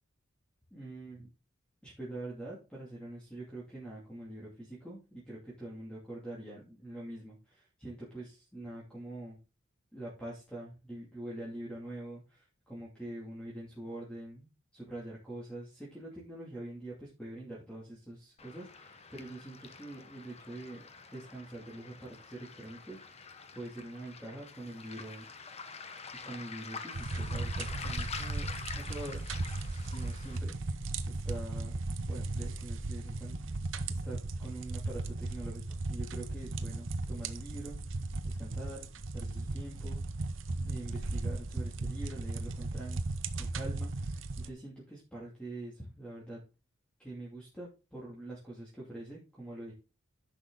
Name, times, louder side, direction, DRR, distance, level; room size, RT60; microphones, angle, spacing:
voice 1, 0.7-1.3 1.8-9.4 9.9-20.8 21.1-23.2 23.5-25.3 26.2-29.3 29.7-31.8 32.1-33.6 33.9-35.6 35.9-38.9 39.1-40.0 40.6-43.0 43.4-46.4 47.0-49.7, right 1 dB, 5° left, -5 dB, 2.6 m, -45 dB
Waves surf, 18.4-30.4, left 5 dB, 30° left, 0.9 m, -46 dB
sound 1, 26.9-44.5, right 2 dB, 65° right, 0.8 m, -36 dB
10.5 x 6.3 x 3.9 m, 0.31 s
head